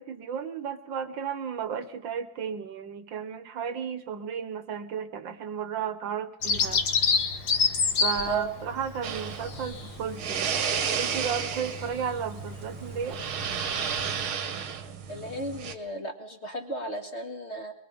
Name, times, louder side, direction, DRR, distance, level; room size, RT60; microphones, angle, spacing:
voice 1, 0.0-6.8 8.0-10.5 10.9-13.2, right 7 dB, 70° right, 12 dB, 1.7 m, -34 dB
Bird vocalization bird call bird song, 6.4-14.3, left 5 dB, 55° left, 1.9 m, -29 dB
voice 2, 8.3-8.6 15.1-17.7, right 2 dB, 35° left, 4 dB, 1.9 m, -34 dB
sound 1, 9.0-15.7, right 7 dB, 85° right, 2.1 m, -32 dB
23.0 x 22.5 x 5.2 m, 0.76 s
omnidirectional pair, 2.2 m